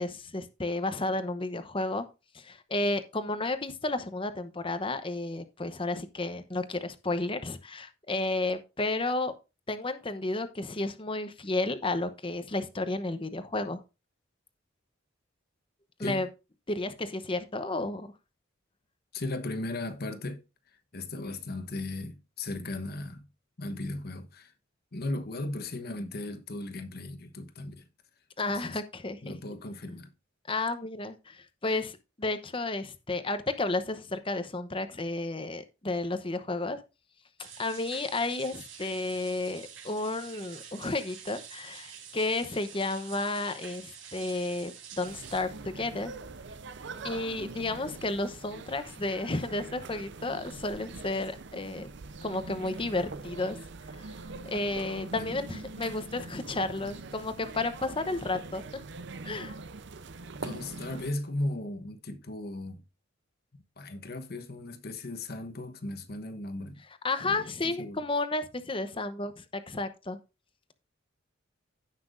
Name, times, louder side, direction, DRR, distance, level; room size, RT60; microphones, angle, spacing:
voice 1, 0.0-2.0 2.3-9.3 9.7-13.8 16.0-16.3 16.7-18.1 28.4-29.3 30.5-36.8 37.6-46.1 47.0-51.9 52.2-53.6 54.4-58.6 59.2-59.5 67.0-70.2, left 2 dB, 25° left, 0.9 m, -32 dB
voice 2, 19.1-20.4 20.9-23.3 23.6-24.5 24.9-27.9 28.5-28.8 29.2-30.1 46.8-47.2 55.2-55.4 59.3-59.4 60.4-62.8 63.8-66.8 67.2-68.0, left 2 dB, 50° left, 1.1 m, -37 dB
sound 1, 37.4-45.4, right 7 dB, 80° right, 4.8 m, -47 dB
sound 2, 45.0-61.1, right 3 dB, 60° right, 0.7 m, -43 dB
16.0 x 5.9 x 2.6 m
head